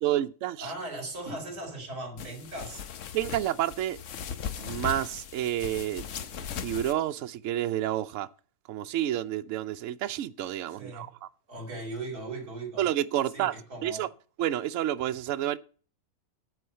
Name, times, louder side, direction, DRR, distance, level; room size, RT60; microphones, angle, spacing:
voice 1, 0.0-0.7 3.1-4.0 4.6-6.0 6.3-8.3 8.7-11.1 12.8-13.5 13.8-14.1 14.4-15.6, right 12 dB, 65° right, 0.9 m, -29 dB
voice 2, 0.6-2.9 10.8-11.1 11.5-12.9 13.3-14.1, right 2 dB, 90° right, 3.3 m, -38 dB
sound 1, 2.2-6.9, left 8 dB, 60° left, 1.0 m, -38 dB
9.3 x 4.7 x 6.7 m
omnidirectional pair, 1.6 m